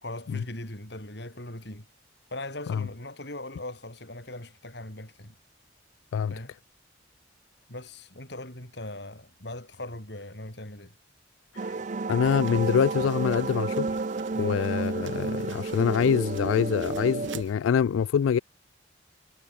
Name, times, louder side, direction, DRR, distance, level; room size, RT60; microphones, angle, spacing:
voice 1, 0.0-1.9 2.3-5.4 6.3-6.6 7.7-11.0 14.3-14.6, left 1 dB, 55° left, 5.4 m, -40 dB
sound 1, 11.6-17.4, right 3 dB, 40° right, 0.5 m, -31 dB
voice 2, 12.1-14.0 14.4-18.4, left 7 dB, 85° left, 0.3 m, -25 dB
sound 2, 12.2-17.5, right 5 dB, 75° right, 6.4 m, -49 dB
head